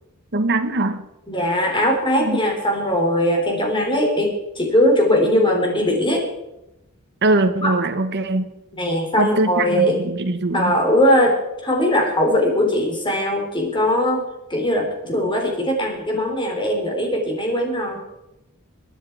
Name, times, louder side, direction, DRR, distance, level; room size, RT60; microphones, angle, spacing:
voice 1, 0.3-1.1 2.2-2.4 7.2-8.5 9.2-10.8, right 2 dB, 50° right, 7 dB, 1.0 m, -22 dB
voice 2, 1.3-6.2 7.6-7.7 8.8-10.0 10.5-11.3 11.6-14.2 14.5-18.0, equal, 20° left, 1 dB, 3.8 m, -20 dB
23.0 x 10.0 x 4.7 m, 0.91 s
head